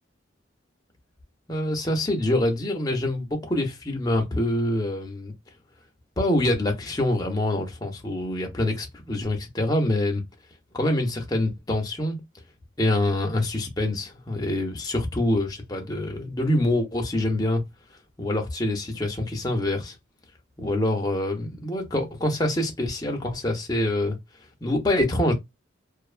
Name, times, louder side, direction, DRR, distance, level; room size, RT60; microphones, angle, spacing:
voice 1, 1.5-5.3 6.2-10.2 10.7-12.2 12.8-17.6 18.2-19.9 20.6-24.2 24.6-25.3, left 1 dB, 20° left, 0.6 m, -25 dB
2.5 x 2.2 x 2.4 m
head